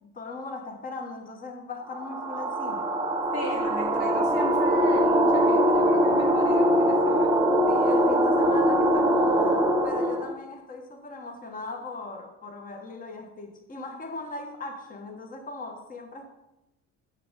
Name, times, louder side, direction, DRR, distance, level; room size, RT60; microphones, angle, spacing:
voice 1, 0.0-2.9 7.7-16.3, left 3 dB, 25° left, 1.0 m, -38 dB
sound 1, 1.9-10.3, equal, 10° right, 1.0 m, -22 dB
voice 2, 3.3-7.4, left 1 dB, 85° left, 2.5 m, -36 dB
7.0 x 6.7 x 3.9 m
supercardioid pair, 85°, 35 cm